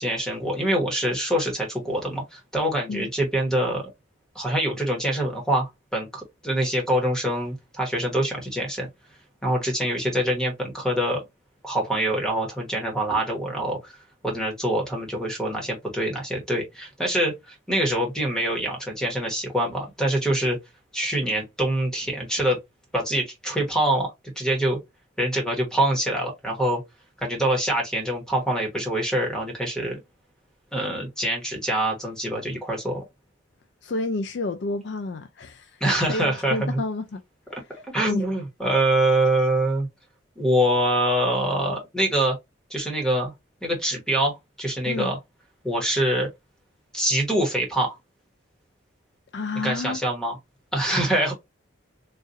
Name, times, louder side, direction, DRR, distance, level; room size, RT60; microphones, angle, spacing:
voice 1, 0.0-3.9 4.3-8.9 9.4-11.2 11.6-14.0 14.2-20.6 20.9-22.6 22.9-24.8 25.2-26.8 27.2-30.0 30.7-33.0 35.8-36.8 37.9-39.9 40.4-42.4 42.7-43.3 43.6-45.2 45.6-46.3 46.9-48.0 49.6-50.4 50.7-51.3, right 1 dB, 5° left, 1.2 m, -25 dB
voice 2, 33.8-37.2 37.7-37.8 38.1-38.2 44.8-45.1 49.3-50.0, left 3 dB, 55° left, 0.4 m, -30 dB
4.0 x 2.5 x 2.5 m
head